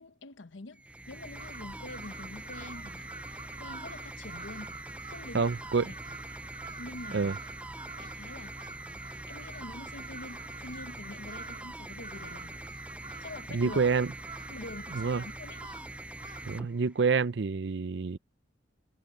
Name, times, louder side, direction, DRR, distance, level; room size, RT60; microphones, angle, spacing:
voice 1, 0.0-3.1 3.6-4.7 5.0-5.5 5.8-6.2 6.8-7.3 7.9-8.6 9.3-12.6 13.2-13.8 14.5-15.8, left 2 dB, 85° left, 1.0 m, -46 dB
sound 1, 0.7-17.3, right 1 dB, 5° right, 0.3 m, -44 dB
Crow, 1.3-16.7, right 4 dB, 25° right, 3.5 m, -47 dB
voice 2, 5.3-5.8 7.1-7.3 13.5-14.1 14.9-15.2 16.5-18.2, right 4 dB, 65° right, 0.6 m, -27 dB
head